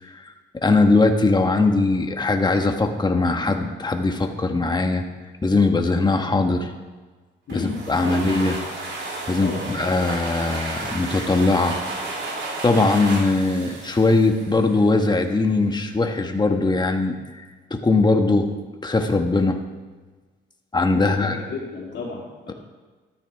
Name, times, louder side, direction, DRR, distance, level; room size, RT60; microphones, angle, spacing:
voice 1, 0.6-5.0 5.4-6.7 7.5-8.6 9.3-11.7 12.6-17.2 17.7-18.5 18.8-19.6 20.7-21.4 22.5-22.6, left 3 dB, 20° left, 4 dB, 1.5 m, -20 dB
sound 1, 7.5-15.0, right 2 dB, 60° right, 3.7 m, -33 dB
voice 2, 20.9-22.5, left 4 dB, 65° left, -3 dB, 3.4 m, -32 dB
13.5 x 13.0 x 3.6 m, 1.3 s
cardioid pair, 90°, 20 cm